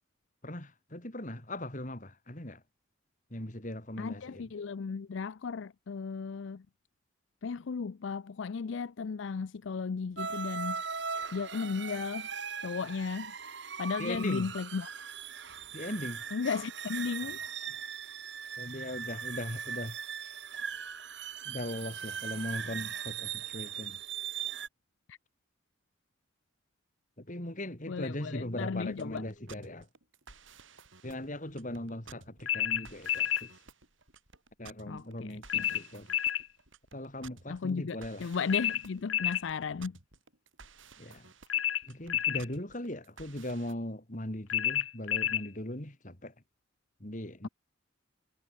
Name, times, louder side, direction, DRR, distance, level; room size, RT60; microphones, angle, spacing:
voice 1, 0.4-2.6 3.3-4.5 14.0-14.5 15.7-16.2 17.2-17.3 18.6-20.4 21.5-24.0 27.2-29.9 31.0-33.5 34.6-36.1 36.9-38.3 41.0-41.3 41.9-46.3 47.0-47.5, left 1 dB, 40° left, 3.6 m, -39 dB
voice 2, 4.0-6.6 7.4-10.8 11.3-12.3 12.6-13.3 13.8-14.9 16.3-17.4 25.1-25.2 27.9-29.3 34.9-35.8 37.5-39.9, left 5 dB, 70° left, 0.5 m, -35 dB
sound 1, 10.2-24.7, right 7 dB, 60° right, 3.5 m, -39 dB
sound 2, 28.9-43.7, right 4 dB, 75° right, 5.4 m, -55 dB
sound 3, 32.5-33.5 35.5-36.5 38.5-39.5 41.5-42.5 44.5-45.5, left 11 dB, 85° left, 1.1 m, -30 dB
head